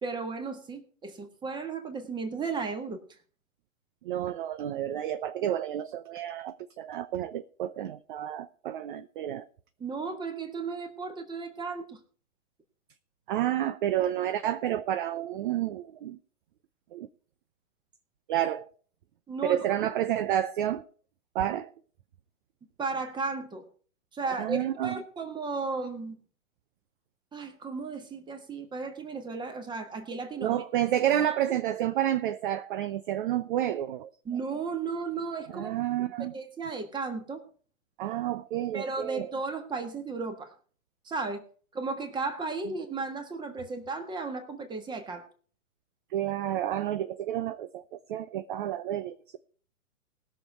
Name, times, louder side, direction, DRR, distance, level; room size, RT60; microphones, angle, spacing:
voice 1, 0.0-3.0 9.8-12.0 19.3-19.9 22.8-23.6 24.1-26.2 27.3-30.6 34.2-35.8 36.3-37.4 38.7-40.5 41.0-41.4 41.7-45.2, right 4 dB, 10° right, 1.5 m, -34 dB
voice 2, 4.0-9.5 13.3-16.2 16.9-17.1 18.3-18.7 19.4-20.8 21.3-21.7 24.3-25.0 30.4-34.1 35.5-36.3 38.0-39.3 46.1-49.4, right 11 dB, 40° right, 0.6 m, -30 dB
19.5 x 6.6 x 4.4 m
hypercardioid pair, 125°, 42 cm